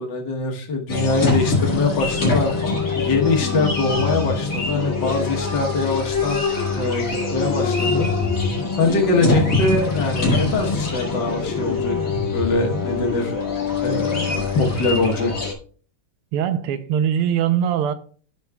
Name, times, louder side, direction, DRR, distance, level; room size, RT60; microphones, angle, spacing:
voice 1, 0.0-2.5 2.9-6.4 6.8-7.0 7.3-8.1 8.8-13.3 13.8-15.3, left 3 dB, 60° left, 1.8 m, -23 dB
sound 1, 0.9-15.5, left 4 dB, 40° left, 2.3 m, -23 dB
voice 2, 16.3-17.9, right 9 dB, 85° right, 1.6 m, -21 dB
12.0 x 5.9 x 2.3 m
omnidirectional pair, 2.4 m